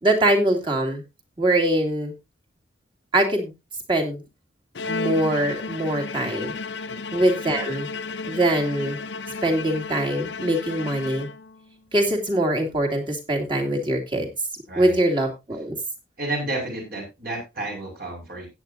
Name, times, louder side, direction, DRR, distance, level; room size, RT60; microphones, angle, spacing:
voice 1, 0.0-1.0 1.4-2.1 3.1-3.5 3.9-4.2 4.9-6.5 7.1-7.9 8.3-9.0 9.4-11.3 11.9-14.3 14.7-15.8, right 1 dB, 25° right, 1 dB, 2.6 m, -23 dB
Bowed string instrument, 4.7-11.7, left 4 dB, 70° left, 0.7 m, -33 dB
voice 2, 14.7-15.0 16.2-18.5, right 2 dB, 50° right, 0 dB, 5.4 m, -31 dB
16.0 x 8.9 x 2.7 m, 0.24 s
head